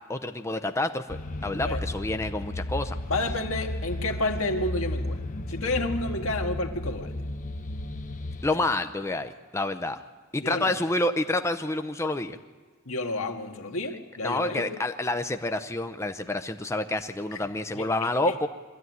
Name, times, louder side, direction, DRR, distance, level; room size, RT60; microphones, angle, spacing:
voice 1, 0.1-3.0 8.4-10.0 10.3-12.4 14.2-18.5, left 2 dB, 15° left, 7 dB, 0.6 m, -28 dB
sound 1, 1.1-8.5, left 1 dB, 40° left, 0.9 m, -34 dB
voice 2, 3.1-5.2 5.5-7.1 10.4-10.8 12.9-14.7 17.3-17.4 17.7-17.9 18.2-18.3, left 2 dB, 75° left, 4 dB, 1.8 m, -30 dB
22.5 x 14.0 x 9.4 m, 1.5 s
head